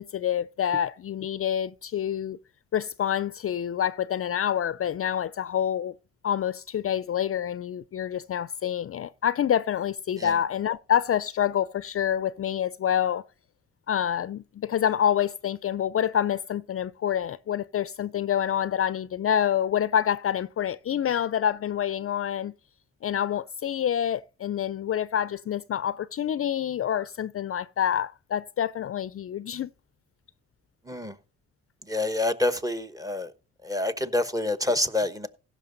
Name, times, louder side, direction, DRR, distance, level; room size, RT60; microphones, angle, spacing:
voice 1, 0.0-2.4 2.7-5.9 6.2-13.2 13.9-22.5 23.0-29.7, left 9 dB, 45° left, 0.5 m, -27 dB
voice 2, 31.9-33.3 33.6-35.3, left 2 dB, 10° right, 1.1 m, -27 dB
16.0 x 6.0 x 3.9 m
supercardioid pair, 60°, 31 cm